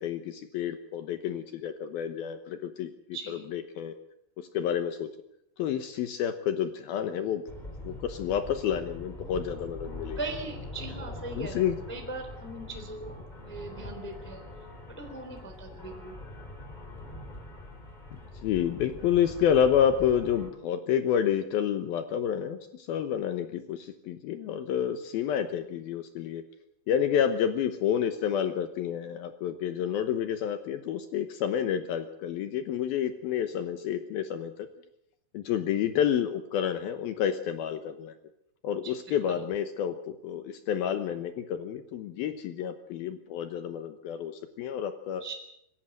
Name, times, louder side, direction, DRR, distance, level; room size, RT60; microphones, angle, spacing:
voice 1, 0.0-2.9 3.3-4.0 4.4-5.1 5.6-7.4 7.8-10.2 11.4-11.8 18.4-26.4 26.9-34.7 35.3-38.1 38.6-40.0 40.2-45.2, left 9 dB, 80° left, 9 dB, 2.2 m, -29 dB
voice 2, 3.1-3.5 10.2-14.4 15.0-16.1 38.8-39.4 45.2-45.3, right 2 dB, 5° left, 4 dB, 2.2 m, -40 dB
sound 1, 7.5-20.5, left 1 dB, 25° left, 0.9 m, -43 dB
23.0 x 16.0 x 7.9 m, 0.78 s
omnidirectional pair, 5.8 m